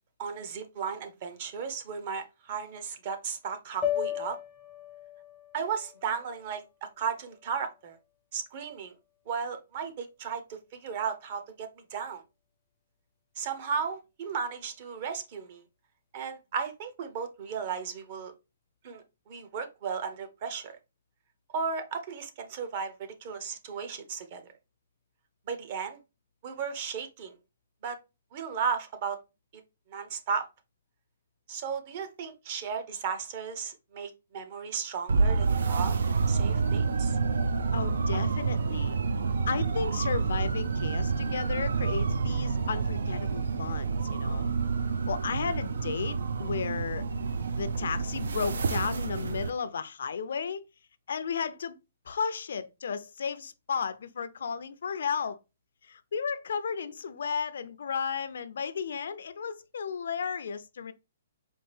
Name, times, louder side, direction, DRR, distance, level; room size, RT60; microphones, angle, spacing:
voice 1, 0.2-4.4 5.5-8.0 8.3-8.9 9.3-12.2 13.4-15.6 16.1-18.3 18.8-20.8 21.5-24.4 25.5-26.0 26.4-27.3 27.8-28.0 28.3-29.2 29.9-30.5 31.5-36.0 36.3-37.2 38.1-38.2, right 6 dB, 35° right, 0.6 m, -35 dB
sound 1, 3.8-8.1, left 11 dB, 15° left, 0.5 m, -37 dB
sound 2, 35.1-49.5, right 4 dB, 85° right, 0.5 m, -28 dB
voice 2, 37.7-39.0 39.5-44.5 45.1-47.1 47.6-50.6 51.1-51.7 52.1-55.4 55.9-60.9, left 6 dB, 70° left, 0.4 m, -34 dB
4.4 x 2.5 x 3.3 m
hypercardioid pair, 170°, 0 cm